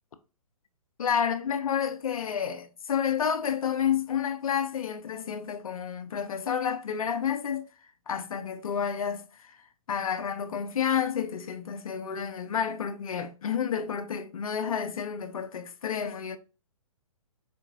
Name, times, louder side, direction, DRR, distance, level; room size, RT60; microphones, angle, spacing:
voice 1, 1.0-7.7 8.1-9.6 9.9-16.4, left 8 dB, 75° left, 0.5 m, -30 dB
4.4 x 2.7 x 2.5 m
hypercardioid pair, 135°, 19 cm